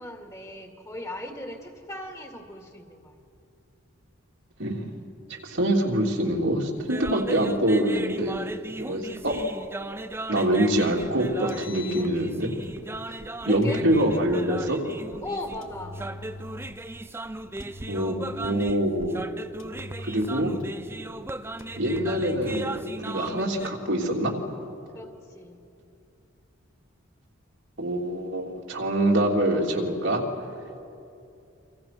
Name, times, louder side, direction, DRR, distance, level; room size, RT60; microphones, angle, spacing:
voice 1, 0.0-3.2 13.1-13.8 15.2-16.0 24.9-25.6, left 1 dB, 15° left, 3 dB, 2.3 m, -38 dB
voice 2, 5.3-8.4 8.7-9.3 10.3-12.5 13.5-14.8 17.9-19.2 20.0-20.5 21.8-24.3 27.8-30.2, right 1 dB, 70° right, -1 dB, 3.3 m, -25 dB
sound 1, 6.8-23.7, right 2 dB, 10° right, 0.5 m, -37 dB
Engine, 11.3-12.8 13.6-14.8 15.6-16.9 17.6-18.9 19.6-20.9 21.6-22.8, left 1 dB, 75° left, 1.6 m, -42 dB
29.0 x 26.0 x 6.1 m, 2.6 s
head